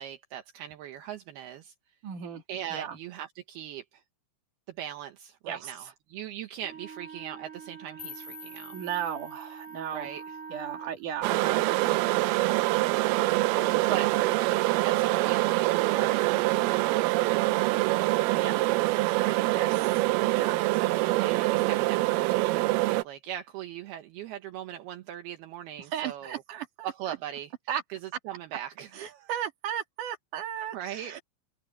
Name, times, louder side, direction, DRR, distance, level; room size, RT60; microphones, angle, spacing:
voice 1, 0.0-1.7 2.5-4.0 4.8-8.7 9.9-10.2 13.9-14.1 14.8-17.6 19.2-19.4 20.6-26.4 26.8-27.5 27.9-28.0 28.3-29.2 30.7-31.2, right 11 dB, 70° right, 2.5 m, -39 dB
voice 2, 2.0-2.4 2.7-3.0 5.5-5.9 8.7-10.1 10.5-12.0 13.5-14.3 18.4-18.7 19.5-20.0 20.3-20.8 25.8-26.9 27.7-27.8 28.9-31.2, right 9 dB, 50° right, 3.2 m, -36 dB
Wind instrument woodwind instrument, 6.6-11.0, right 6 dB, 30° right, 3.1 m, -44 dB
sound 1, 8.0-11.0, left 7 dB, 50° left, 4.3 m, -48 dB
sound 2, 11.2-23.0, right 20 dB, 90° right, 3.4 m, -25 dB
omnidirectional pair, 5.8 m